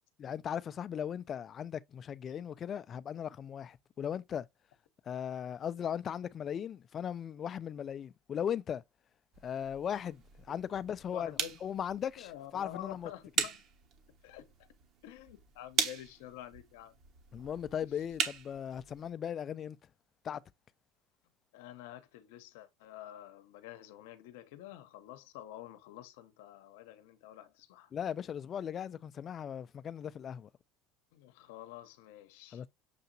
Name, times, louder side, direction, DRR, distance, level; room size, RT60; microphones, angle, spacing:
voice 1, 0.2-4.5 5.1-8.8 9.4-13.1 17.3-19.8 20.2-20.4 27.9-30.5 32.5-32.7, left 8 dB, 35° left, 0.3 m, -38 dB
sound 1, 9.3-19.1, right 7 dB, 50° right, 1.1 m, -40 dB
voice 2, 11.1-11.6 12.2-13.6 14.2-14.5 15.0-16.9 21.5-27.9 31.1-32.6, left 13 dB, 80° left, 0.7 m, -48 dB
6.6 x 2.8 x 2.6 m
supercardioid pair, 110°, 0 cm